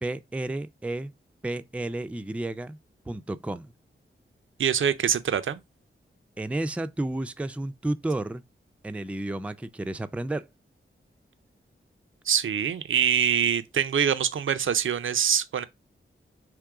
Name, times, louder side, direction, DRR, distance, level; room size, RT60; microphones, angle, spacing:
voice 1, 0.0-1.1 1.4-2.8 3.1-3.7 6.4-8.4 8.8-10.5, right 2 dB, 5° right, 0.4 m, -31 dB
voice 2, 4.6-5.6 12.3-15.6, right 8 dB, 70° right, 0.5 m, -24 dB
3.7 x 3.0 x 4.6 m
wide cardioid pair, 85°, 21 cm